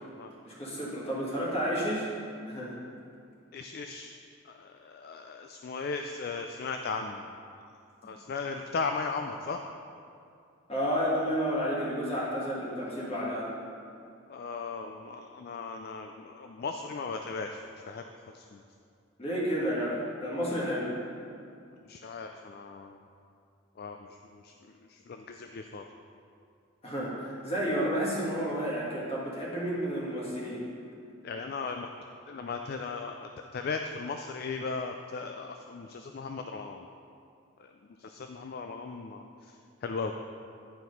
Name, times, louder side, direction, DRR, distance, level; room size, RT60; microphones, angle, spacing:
voice 1, 0.4-2.1 2.5-2.8 10.7-13.5 19.2-20.9 26.8-30.6, equal, 25° left, -6 dB, 1.7 m, -31 dB
voice 2, 3.5-4.1 4.6-7.3 8.0-9.6 14.3-17.6 17.9-18.0 18.3-18.6 21.9-23.0 23.8-24.2 24.4-24.5 24.9-25.8 31.2-31.9 32.3-36.9 38.0-39.2 39.8-40.1, left 4 dB, 45° left, 4 dB, 0.3 m, -37 dB
9.7 x 4.7 x 5.3 m, 2.4 s
head